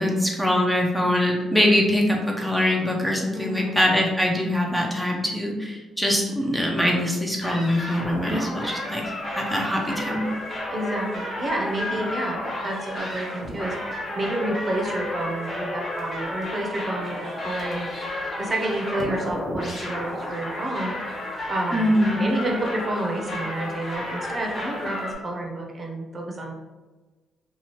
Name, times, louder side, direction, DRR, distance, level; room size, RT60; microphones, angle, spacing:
voice 1, 0.0-9.0 9.3-10.3 21.7-22.3, left 1 dB, ahead, -1 dB, 0.5 m, -23 dB
voice 2, 3.3-3.8 8.3-8.6 10.7-13.8 14.2-17.9 18.4-20.9 21.5-26.5, right 1 dB, 35° right, 0 dB, 0.7 m, -29 dB
sound 1, 7.4-25.1, left 1 dB, 40° left, 1.2 m, -32 dB
2.8 x 2.4 x 3.1 m, 1.3 s
cardioid pair, 90°, 0 cm